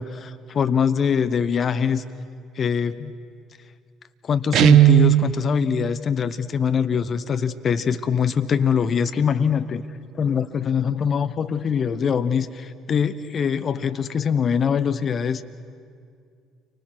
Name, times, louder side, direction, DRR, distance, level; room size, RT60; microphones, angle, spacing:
voice 1, 0.0-2.0 2.6-3.1 4.2-9.8 10.1-15.4, left 7 dB, 40° left, 11 dB, 1.0 m, -23 dB
Guitar, 4.5-5.3, right 15 dB, 55° right, 0.8 m, -14 dB
29.5 x 24.5 x 6.2 m, 2.3 s
figure-of-eight pair, 55°, 0 cm